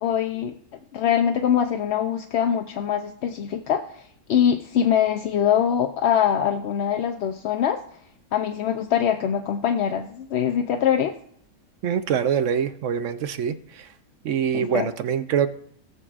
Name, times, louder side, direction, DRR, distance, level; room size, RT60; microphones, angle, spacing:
voice 1, 0.0-0.5 0.9-7.8 8.3-11.2 14.5-14.9, left 9 dB, 65° left, 5 dB, 0.7 m, -23 dB
voice 2, 11.8-13.6 14.2-15.5, right 8 dB, 65° right, 10 dB, 0.8 m, -24 dB
17.5 x 7.3 x 2.4 m, 0.65 s
omnidirectional pair, 1.6 m